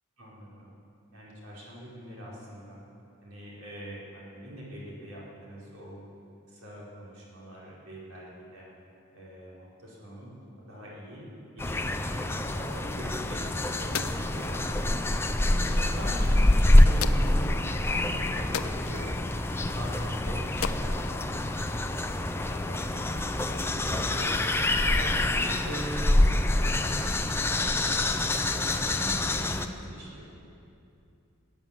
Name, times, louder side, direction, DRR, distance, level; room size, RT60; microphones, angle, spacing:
voice 1, 0.2-0.7 1.1-2.8 3.2-6.0 6.5-8.7 9.1-10.3 10.7-15.0 15.6-17.5 17.8-19.2 19.6-24.4 25.0-26.4 26.8-30.4, equal, 85° right, -6 dB, 4.9 m, -43 dB
sound 1, 11.6-29.7, left 1 dB, 10° left, 0.5 m, -26 dB
sound 2, 13.1-22.1, left 8 dB, 80° left, 0.6 m, -41 dB
20.0 x 9.1 x 7.5 m, 2.6 s
head